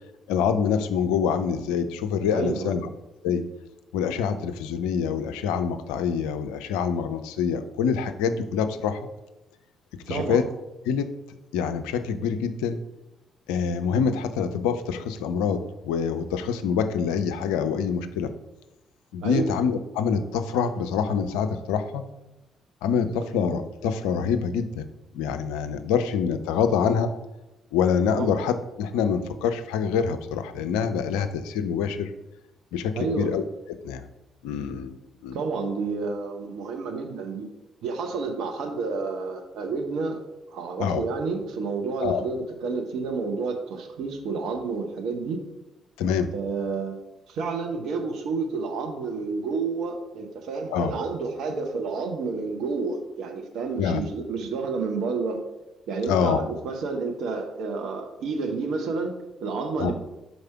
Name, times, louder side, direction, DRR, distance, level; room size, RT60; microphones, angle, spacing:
voice 1, 0.3-2.8 3.2-3.4 3.9-9.1 10.1-10.5 10.9-11.1 11.5-12.8 13.5-18.3 19.1-22.1 22.8-24.8 25.1-27.1 27.7-32.1 32.7-33.4 33.8-34.1 34.4-35.0 35.2-35.4 40.8-41.0 42.0-42.2 46.0-46.3 50.7-50.9 53.8-54.0 56.1-56.4 59.8-59.9, left 7 dB, 70° left, 10 dB, 0.4 m, -25 dB
voice 2, 2.3-2.8 10.1-10.4 19.2-19.5 28.2-28.3 32.9-33.3 35.3-37.5 37.8-40.2 40.5-45.4 46.3-55.4 55.9-59.9, right 4 dB, 65° right, 4 dB, 0.7 m, -30 dB
4.8 x 4.1 x 5.7 m, 0.98 s
figure-of-eight pair, 45°, 0 cm